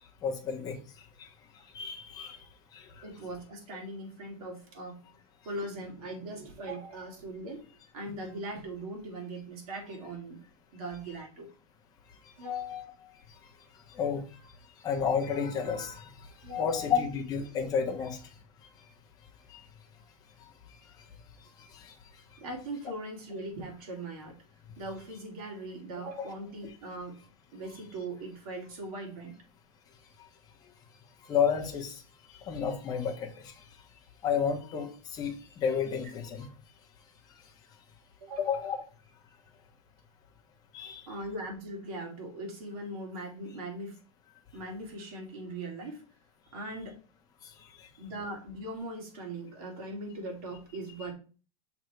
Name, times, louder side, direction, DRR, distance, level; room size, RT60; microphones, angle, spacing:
voice 1, 0.2-0.8 1.2-1.3 1.7-2.4 2.7-3.0 13.9-14.2 14.8-16.1 16.6-18.2 19.5-19.6 21.6-21.9 31.3-32.0 32.4-33.5 34.2-36.5 38.4-38.8 40.7-41.0, left 7 dB, 20° left, 1 dB, 1.0 m, -31 dB
voice 2, 3.0-5.0 5.4-7.6 7.9-10.4 10.7-11.5 12.4-13.2 16.4-16.9 22.4-24.4 24.8-27.2 27.5-29.4 38.2-38.6 41.1-44.0 44.5-46.0 46.5-47.0 48.0-51.1, right 1 dB, 65° right, 0 dB, 2.8 m, -40 dB
6.3 x 3.6 x 4.6 m, 0.37 s
supercardioid pair, 170°, 20 cm